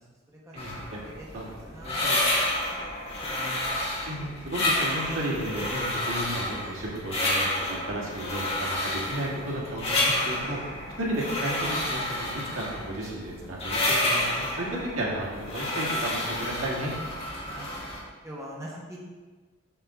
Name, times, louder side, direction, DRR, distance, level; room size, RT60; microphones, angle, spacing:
sound 1, 0.6-18.0, left 1 dB, 30° left, 1.5 m, -30 dB
voice 1, 1.8-2.2 4.1-10.6 11.0-14.7 15.0-16.9, right 1 dB, 90° right, -4 dB, 1.9 m, -33 dB
voice 2, 3.2-3.6 17.4-17.7 18.2-19.0, right 1 dB, 15° right, -6 dB, 1.4 m, -41 dB
7.2 x 6.5 x 3.7 m, 1.4 s
head